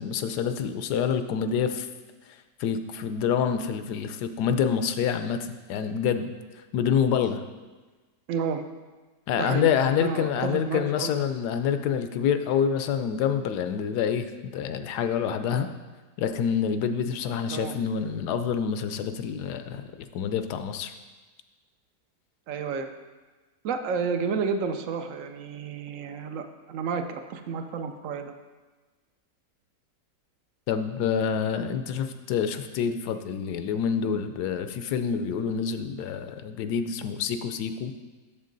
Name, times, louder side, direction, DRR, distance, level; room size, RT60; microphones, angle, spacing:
voice 1, 0.0-1.9 2.3-6.3 6.7-7.4 9.3-15.7 16.2-20.9 30.7-37.9, left 7 dB, 75° left, 9 dB, 1.1 m, -27 dB
voice 2, 8.3-8.6 9.3-9.7 10.0-11.1 17.5-17.8 22.5-22.9 23.6-28.3, right 5 dB, 70° right, 7 dB, 0.8 m, -31 dB
8.2 x 7.0 x 3.9 m, 1.3 s
omnidirectional pair, 1.9 m